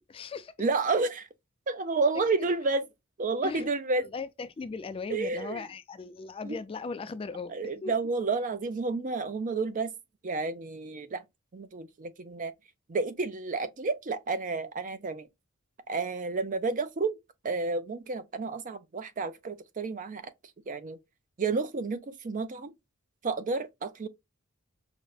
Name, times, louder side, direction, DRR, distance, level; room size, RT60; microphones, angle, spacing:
voice 1, 0.1-0.5 2.4-2.5 3.4-3.7 4.1-7.5 7.8-7.9, left 4 dB, 25° left, 0.3 m, -38 dB
voice 2, 0.6-1.3 1.7-2.8 3.2-4.1 5.1-5.6 6.4-6.6 7.5-9.9 10.2-11.2 11.5-12.5 12.9-15.3 15.9-17.2 17.4-20.3 20.7-21.0 21.4-22.7 23.2-24.1, right 3 dB, 40° right, 0.5 m, -30 dB
5.1 x 2.1 x 2.3 m
head